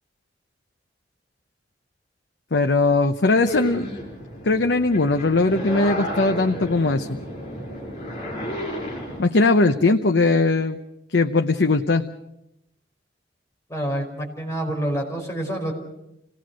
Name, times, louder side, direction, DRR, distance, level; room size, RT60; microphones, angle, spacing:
voice 1, 2.5-3.9 4.4-7.2 9.2-10.8 11.1-12.0, left 3 dB, 85° left, 6 dB, 0.8 m, -19 dB
sound 1, 3.4-9.2, equal, 35° left, 6.8 m, -32 dB
voice 2, 13.7-15.7, right 1 dB, 15° left, 0 dB, 4.9 m, -27 dB
27.5 x 18.0 x 6.3 m, 0.85 s
head